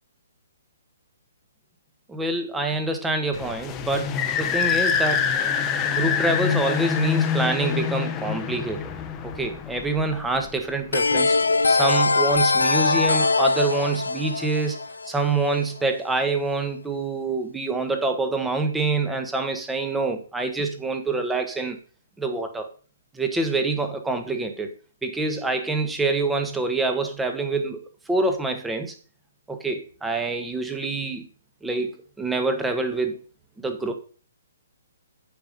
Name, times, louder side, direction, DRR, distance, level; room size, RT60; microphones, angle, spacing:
voice 1, 2.1-5.3 5.8-8.9 9.2-11.4 11.7-14.8 15.1-21.8 22.2-22.7 23.1-24.7 25.0-27.8 28.1-28.9 29.5-31.2 31.6-33.2 33.6-33.9, right 3 dB, 5° right, 5 dB, 1.4 m, -26 dB
sound 1, 3.3-10.7, left 7 dB, 20° left, 0.9 m, -25 dB
sound 2, 10.9-15.6, left 3 dB, 90° left, 0.6 m, -22 dB
8.7 x 5.7 x 5.3 m, 0.39 s
hypercardioid pair, 140°, 0 cm